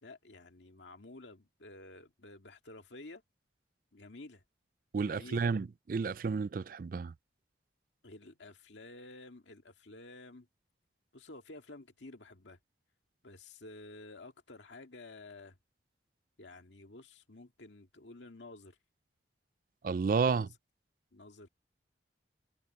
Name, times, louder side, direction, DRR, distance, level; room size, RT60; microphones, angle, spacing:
voice 1, 0.0-3.2 3.9-4.4 5.0-5.5 8.0-10.5 11.1-12.6 13.2-15.6 16.4-18.8 20.4-20.5 21.1-21.5, left 2 dB, 80° left, 2.0 m, -51 dB
voice 2, 4.9-7.1 19.8-20.5, right 5 dB, 50° right, 0.3 m, -31 dB
head